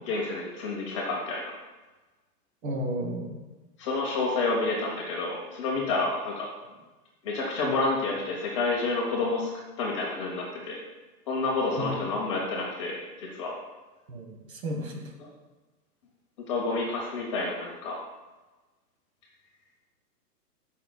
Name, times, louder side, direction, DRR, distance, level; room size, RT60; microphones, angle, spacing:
voice 1, 0.1-1.5 3.8-6.5 7.2-9.5 9.8-10.8 11.3-13.5 15.2-15.3 16.5-18.0, left 3 dB, 20° left, -2 dB, 0.8 m, -29 dB
voice 2, 2.6-3.4 11.8-12.0 14.1-15.1, equal, 55° right, 4 dB, 1.4 m, -33 dB
13.0 x 5.6 x 2.3 m, 1.2 s
hypercardioid pair, 165°, 48 cm